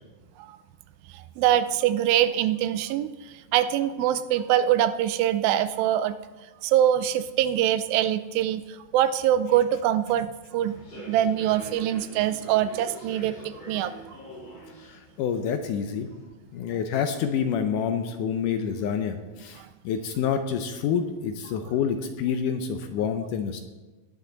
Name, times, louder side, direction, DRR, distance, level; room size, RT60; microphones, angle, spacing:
voice 1, 1.1-6.2 6.6-10.3 10.5-14.2 19.6-19.7, right 11 dB, 85° right, 13 dB, 2.3 m, -24 dB
Human voice / Subway metro underground, 10.7-16.2, equal, 40° left, 5.3 m, -45 dB
voice 2, 14.8-16.1 16.5-23.6, left 7 dB, 75° left, 7 dB, 2.0 m, -28 dB
19.0 x 9.7 x 3.9 m, 1.2 s
omnidirectional pair, 4.2 m